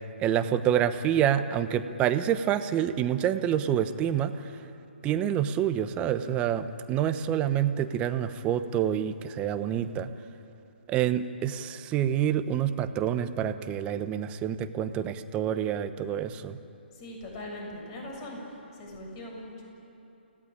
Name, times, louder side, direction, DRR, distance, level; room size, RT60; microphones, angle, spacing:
voice 1, 0.2-4.3 5.0-10.1 10.9-16.6, right 10 dB, 20° right, 11 dB, 1.0 m, -27 dB
voice 2, 16.9-19.6, left 1 dB, 30° left, 0 dB, 7.6 m, -41 dB
30.0 x 17.5 x 8.9 m, 2.9 s
hypercardioid pair, 145°, 6 cm